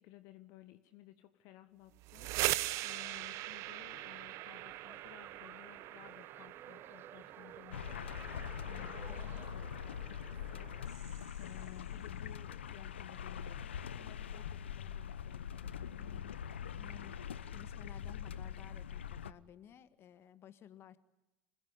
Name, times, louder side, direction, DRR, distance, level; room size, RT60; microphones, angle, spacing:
voice 1, 0.0-16.1, left 15 dB, 60° left, 10 dB, 1.5 m, -57 dB
sound 1, 1.9-11.7, right 18 dB, 55° right, 1.0 m, -42 dB
sound 2, 2.5-9.5, right 9 dB, 40° right, 1.3 m, -55 dB
sound 3, 7.7-19.3, left 8 dB, 80° left, 0.9 m, -43 dB
voice 2, 16.0-16.4 16.8-21.0, left 9 dB, 40° left, 13 dB, 1.8 m, -56 dB
26.5 x 20.5 x 9.7 m, 0.98 s
hypercardioid pair, 75°, 6 cm